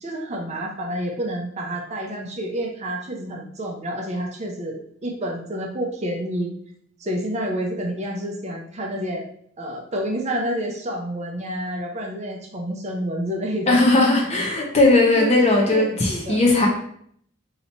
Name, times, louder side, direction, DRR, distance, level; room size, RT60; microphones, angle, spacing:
voice 1, 0.0-6.5 7.0-9.2 9.6-13.8 15.2-16.4, right 1 dB, 35° right, 0 dB, 0.6 m, -29 dB
voice 2, 13.7-16.7, left 2 dB, 35° left, -1 dB, 0.6 m, -18 dB
2.8 x 2.7 x 4.3 m, 0.65 s
head